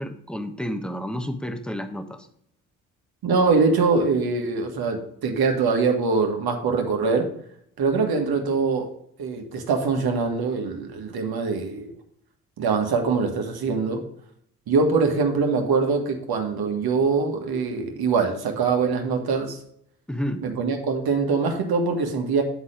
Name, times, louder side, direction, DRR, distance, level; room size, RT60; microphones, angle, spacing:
voice 1, 0.0-2.3 20.1-20.4, equal, ahead, 6 dB, 1.3 m, -30 dB
voice 2, 3.2-7.3 7.8-8.9 9.2-11.9 12.6-14.0 14.7-19.6 20.4-22.4, right 4 dB, 60° right, 4 dB, 1.7 m, -23 dB
9.6 x 4.2 x 5.0 m, 0.70 s
hypercardioid pair, 50°, 42 cm